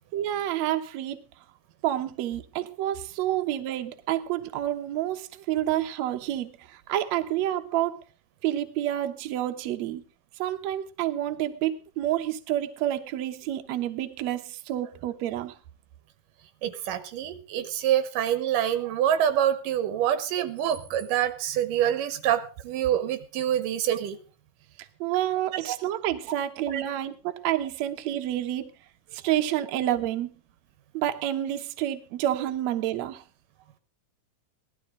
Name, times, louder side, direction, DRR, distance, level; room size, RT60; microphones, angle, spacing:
voice 1, 0.1-1.2 1.8-8.0 8.4-10.0 10.4-15.5 24.8-28.7 29.1-30.3 30.9-33.2, right 12 dB, 65° right, 7 dB, 2.0 m, -29 dB
voice 2, 16.6-24.2 25.7-25.8 26.7-26.8, right 10 dB, 90° right, 11 dB, 2.7 m, -26 dB
17.5 x 12.5 x 3.8 m, 0.34 s
omnidirectional pair, 3.8 m